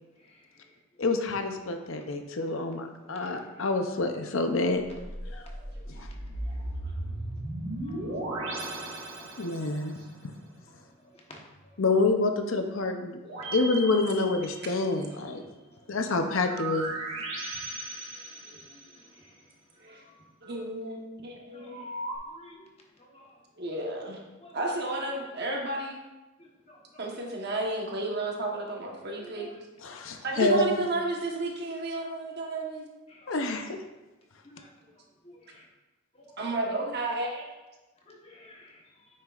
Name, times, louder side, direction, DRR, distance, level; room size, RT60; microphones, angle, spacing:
voice 1, 1.0-4.8 5.3-5.4 6.0-6.1 9.4-10.3 11.8-13.2 13.5-15.4 15.9-17.0 29.8-30.8 33.3-33.8, left 2 dB, 65° left, 5 dB, 0.6 m, -27 dB
sound 1, 4.8-9.9 13.2-15.0 16.4-19.0 21.7-22.2, right 2 dB, 65° right, 1.7 m, -36 dB
voice 2, 5.3-5.6 6.4-6.7 7.9-8.2 11.3-11.4 18.4-18.5 21.5-21.9 22.3-22.6 23.1-23.2 24.4-24.5 26.4-26.8 29.2-29.5 33.2-33.3 34.5-34.7 35.5-35.6 36.2-36.5 38.1-38.8, left 1 dB, 30° left, -1 dB, 1.1 m, -52 dB
voice 3, 20.4-21.8 23.6-24.2 24.5-26.0 27.0-29.5 30.2-32.9 36.4-37.5, right 2 dB, 50° right, 0 dB, 1.2 m, -32 dB
8.7 x 6.4 x 2.4 m, 1.1 s
head